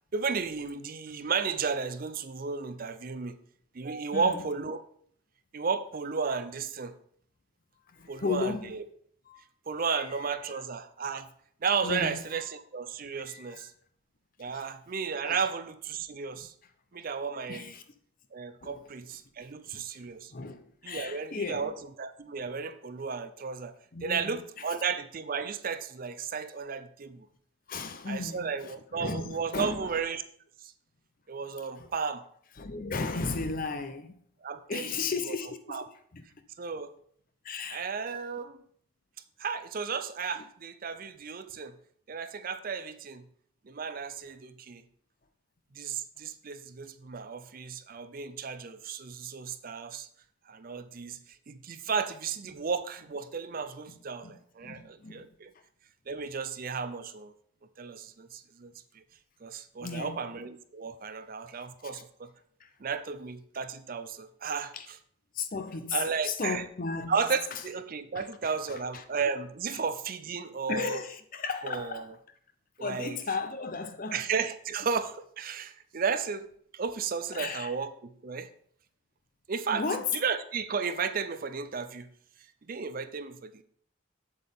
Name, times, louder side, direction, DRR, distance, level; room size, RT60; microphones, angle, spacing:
voice 1, 0.1-3.4 3.7-4.8 5.5-7.0 8.1-8.8 9.7-11.3 11.6-13.7 14.4-16.5 16.9-17.7 18.3-20.3 20.8-21.7 22.0-23.7 24.0-27.3 28.1-30.2 30.6-30.7 31.3-32.2 34.4-35.0 35.3-35.4 35.7-35.8 36.6-36.9 37.7-38.6 39.4-41.8 42.1-43.2 43.6-44.8 45.7-50.1 50.5-55.5 56.1-57.3 57.8-59.0 59.4-62.3 62.8-65.0 65.9-66.6 67.1-71.0 71.6-72.0 72.8-73.2 74.1-76.5 76.7-78.5 79.5-82.1 82.7-83.6, right 5 dB, 40° right, 0.4 m, -34 dB
voice 2, 4.1-4.4 7.9-8.7 9.3-9.4 9.7-10.4 11.8-12.2 13.3-13.6 14.5-14.6 15.3-15.4 17.5-17.8 18.6-18.8 19.4-19.5 19.7-19.8 20.3-21.7 23.9-24.4 27.7-29.9 31.7-31.9 32.6-34.2 34.7-35.9 36.1-36.2 37.4-37.9 40.4-40.5 53.9-54.0 54.2-55.3 59.8-60.2 61.8-62.0 62.6-62.7 64.7-64.9 65.3-67.1 67.5-67.6 68.1-69.0 69.7-69.8 70.7-72.1 72.8-74.2 77.3-77.7 79.7-80.1, left 4 dB, 40° left, 0.7 m, -35 dB
7.7 x 7.7 x 3.5 m
head